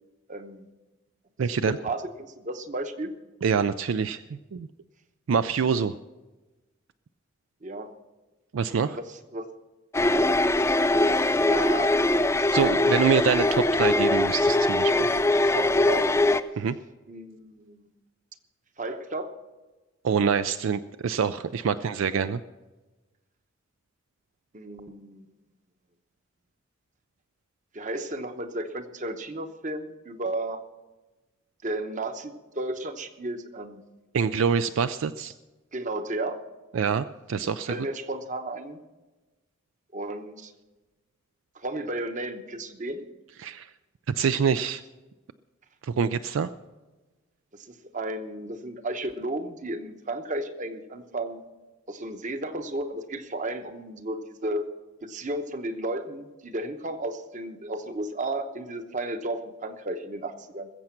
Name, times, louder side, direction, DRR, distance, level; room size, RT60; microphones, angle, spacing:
voice 1, 0.3-0.7 1.4-3.1 7.6-7.9 8.8-9.5 11.4-13.1 15.3-16.1 17.1-17.9 18.8-19.3 24.5-25.3 27.7-30.6 31.6-33.8 35.7-36.4 37.7-38.8 39.9-40.5 41.5-43.0 47.5-51.4 51.9-54.7 55.0-60.7, right 1 dB, 35° right, 8 dB, 1.0 m, -34 dB
voice 2, 1.4-1.8 3.4-4.2 4.5-4.7 5.3-5.9 8.5-9.0 12.5-15.1 16.6-16.8 20.0-22.4 34.1-35.3 36.7-37.7 43.4-43.7 44.2-44.8 45.8-46.5, right 6 dB, 70° right, 12 dB, 0.4 m, -25 dB
sound 1, 9.9-16.4, left 2 dB, 15° left, 0.4 m, -22 dB
20.5 x 7.7 x 5.9 m, 1.2 s
head